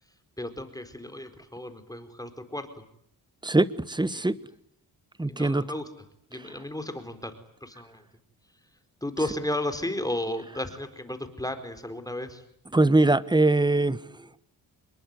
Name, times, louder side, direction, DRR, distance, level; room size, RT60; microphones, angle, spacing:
voice 1, 0.4-2.7 4.1-4.3 5.3-5.9 6.3-8.0 9.0-12.4, left 1 dB, 10° left, 9 dB, 4.4 m, -34 dB
voice 2, 3.4-4.3 5.2-5.6 12.7-14.0, right 2 dB, 10° right, 16 dB, 1.4 m, -22 dB
26.5 x 22.5 x 9.7 m, 0.71 s
cardioid pair, 70°, 42 cm